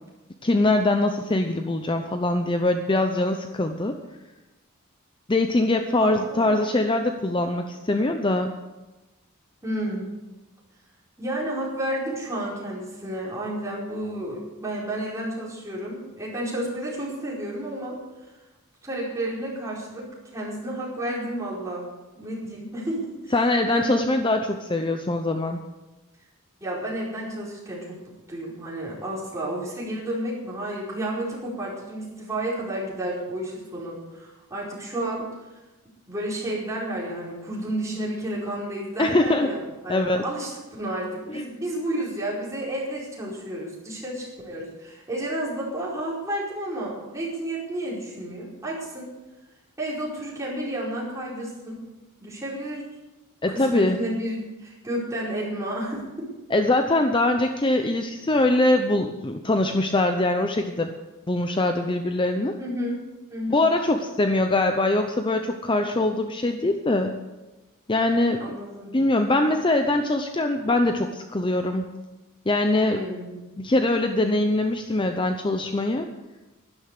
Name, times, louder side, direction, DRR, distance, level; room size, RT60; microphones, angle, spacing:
voice 1, 0.4-3.9 5.3-8.5 23.3-25.6 39.0-39.5 39.9-40.2 41.3-41.4 53.4-54.0 56.5-60.9 61.3-62.6 63.5-67.1 67.9-68.4 68.9-71.9 72.5-73.0 73.6-76.1, left 2 dB, 25° left, 6 dB, 0.7 m, -23 dB
voice 2, 6.0-6.5 9.6-10.1 11.2-18.0 18.8-20.1 20.3-21.9 22.2-23.3 23.7-24.0 26.6-28.0 28.3-35.3 36.1-49.1 49.8-51.8 52.2-52.8 53.5-56.3 62.6-63.0 63.3-63.7 68.4-68.9 72.8-73.4, right 1 dB, 15° right, -6 dB, 4.8 m, -31 dB
12.0 x 11.5 x 6.6 m, 1.1 s
head